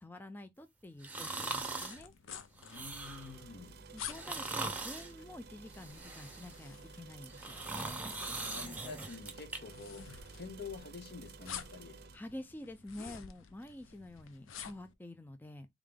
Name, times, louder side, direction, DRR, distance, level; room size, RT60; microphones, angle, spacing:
voice 1, 0.0-2.1 3.9-7.6 12.1-15.7, left 1 dB, 10° left, 0.3 m, -48 dB
sound 1, 1.0-2.0 2.6-3.3 4.0-5.1 5.7-6.6 7.2-9.6 10.0-10.1, right 3 dB, 10° right, 0.7 m, -41 dB
sound 2, 1.6-14.9, left 8 dB, 85° left, 0.5 m, -51 dB
voice 2, 2.6-3.8 8.1-12.0, left 4 dB, 55° left, 0.8 m, -48 dB
sound 3, 3.0-12.2, right 4 dB, 55° right, 0.6 m, -53 dB
3.7 x 3.5 x 3.4 m
head